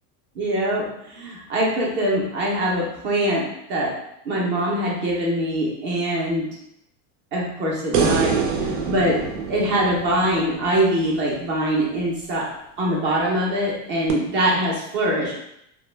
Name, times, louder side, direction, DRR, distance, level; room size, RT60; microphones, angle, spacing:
voice 1, 0.4-3.4 3.7-3.9 4.2-6.5 7.3-9.2 9.5-12.4 12.8-15.3, right 1 dB, 25° right, -4 dB, 0.4 m, -23 dB
sound 1, 7.9-11.3 14.1-14.2, right 5 dB, 85° right, 0.7 m, -25 dB
2.1 x 2.0 x 3.1 m, 0.79 s
supercardioid pair, 150°, 49 cm